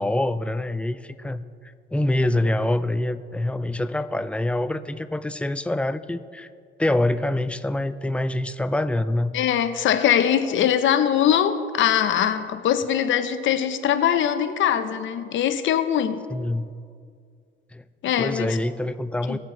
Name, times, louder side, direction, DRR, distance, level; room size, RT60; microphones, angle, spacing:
voice 1, 0.0-6.5 6.8-9.3 16.3-16.7 17.7-17.8 18.2-19.4, left 1 dB, 5° left, 12 dB, 0.4 m, -25 dB
voice 2, 9.3-16.2 18.0-18.6 19.3-19.4, left 9 dB, 75° left, 11 dB, 0.8 m, -22 dB
18.5 x 7.3 x 3.9 m, 2.2 s
cardioid pair, 90°, 20 cm